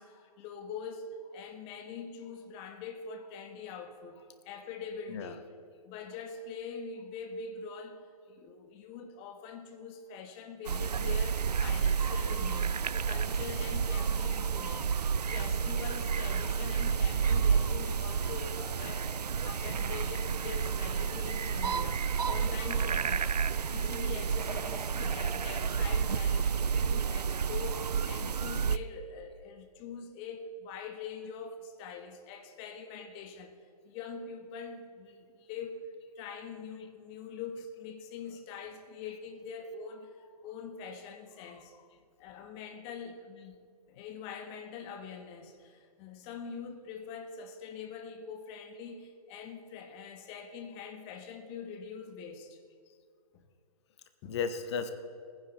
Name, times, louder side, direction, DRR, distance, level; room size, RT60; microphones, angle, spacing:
voice 1, 0.0-5.4 5.8-12.7 13.1-14.9 15.3-19.1 19.4-23.3 23.6-33.5 33.8-35.8 36.1-41.9 42.2-43.6 43.9-52.6 53.3-53.4 54.2-54.4, left 5 dB, 25° left, 6 dB, 1.2 m, -44 dB
sound 1, 10.7-28.8, right 6 dB, 90° right, 0.4 m, -30 dB
voice 2, 24.9-25.3 26.8-26.9 54.3-54.9, left 6 dB, 45° left, 9 dB, 0.9 m, -36 dB
18.0 x 10.0 x 4.1 m, 2.3 s
figure-of-eight pair, 130°, 20 cm